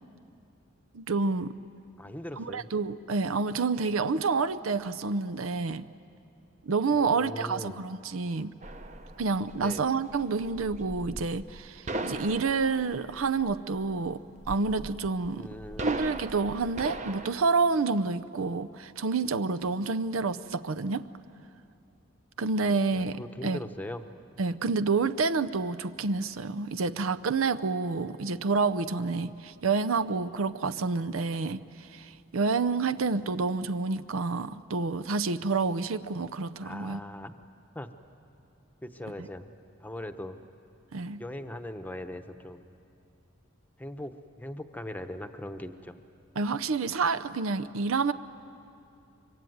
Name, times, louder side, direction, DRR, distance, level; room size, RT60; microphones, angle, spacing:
voice 1, 0.9-1.5 2.4-5.9 6.6-8.5 9.2-15.5 15.8-21.1 22.4-23.6 24.4-37.0 39.2-39.3 40.9-41.2 46.4-48.1, right 4 dB, 90° right, 11 dB, 0.7 m, -28 dB
voice 2, 2.0-2.7 6.9-7.7 9.6-9.9 15.3-16.0 22.6-24.1 36.6-37.3 37.7-37.9 38.8-39.5 39.8-40.4 41.2-42.6 43.8-46.0, left 1 dB, 10° left, 8 dB, 0.9 m, -40 dB
sound 1, 8.6-17.3, right 2 dB, 35° right, 0.9 m, -39 dB
24.5 x 24.0 x 9.3 m, 2.7 s
head